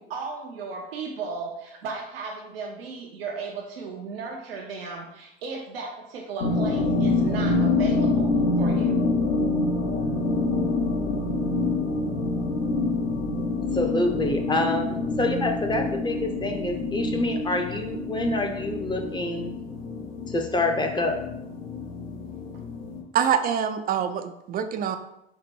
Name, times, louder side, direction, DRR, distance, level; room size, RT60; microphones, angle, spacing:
voice 1, 0.0-9.0, right 4 dB, 80° right, 1 dB, 0.6 m, -35 dB
sound 1, 6.4-23.0, left 3 dB, 75° left, 0.9 m, -26 dB
voice 2, 13.7-19.5 20.3-21.2, left 2 dB, 15° left, 3 dB, 0.7 m, -26 dB
voice 3, 23.1-25.0, right 8 dB, 30° right, 9 dB, 0.4 m, -25 dB
4.2 x 2.1 x 4.4 m, 0.85 s
hypercardioid pair, 75°, 29 cm